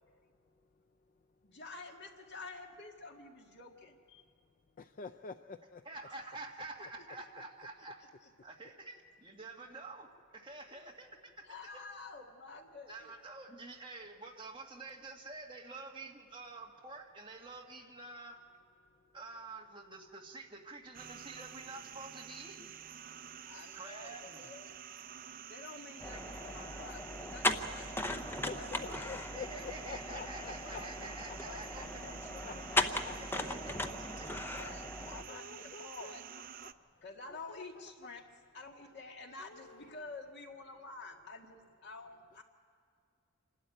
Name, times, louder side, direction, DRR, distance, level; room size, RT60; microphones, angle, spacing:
voice 1, 1.4-4.3 8.2-8.3 11.4-13.1 23.5-24.8 25.5-29.6 30.2-33.9 34.4-36.2 37.0-38.2 38.5-42.4, left 3 dB, 55° left, 2 dB, 2.0 m, -50 dB
voice 2, 4.8-5.8 28.5-31.4 32.4-33.1 35.2-36.7 37.3-37.8 39.4-40.0, left 5 dB, 40° left, 10 dB, 0.4 m, -48 dB
voice 3, 5.8-8.0 8.4-11.4 12.9-18.4 19.1-22.7 23.7-24.4 26.1-26.2 29.3-31.8 33.1-34.3, right 2 dB, 25° right, 0 dB, 1.8 m, -48 dB
sound 1, 20.9-36.7, right 9 dB, 45° right, 0.5 m, -50 dB
sound 2, 26.0-35.2, left 1 dB, 10° left, 0.7 m, -38 dB
27.0 x 12.0 x 9.0 m, 2.4 s
head